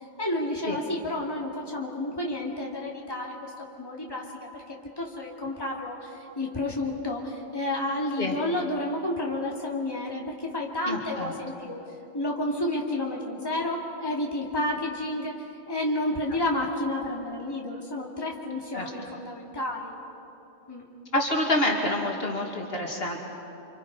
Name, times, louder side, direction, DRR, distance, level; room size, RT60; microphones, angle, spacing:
voice 1, 0.2-11.8 12.1-20.0 20.7-20.9, left 1 dB, 20° left, -2 dB, 2.6 m, -31 dB
voice 2, 10.9-11.3 18.7-18.9 21.1-23.2, left 1 dB, 60° left, -1 dB, 2.7 m, -27 dB
29.5 x 26.0 x 5.5 m, 2.9 s
omnidirectional pair, 1.1 m